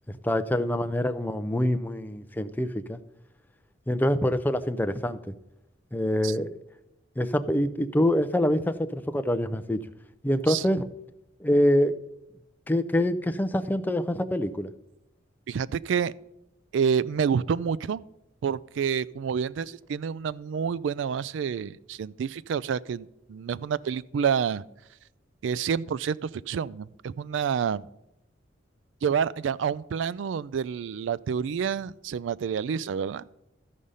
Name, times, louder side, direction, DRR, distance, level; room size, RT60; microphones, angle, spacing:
voice 1, 0.2-3.0 3.9-5.2 5.9-6.6 7.2-9.8 10.2-10.9 11.4-12.0 12.7-14.7, left 1 dB, 10° left, 0.4 m, -25 dB
voice 2, 15.5-16.1 16.7-18.0 18.4-24.6 25.4-27.9 29.0-33.2, right 7 dB, 75° right, 0.3 m, -28 dB
13.5 x 5.0 x 5.5 m
head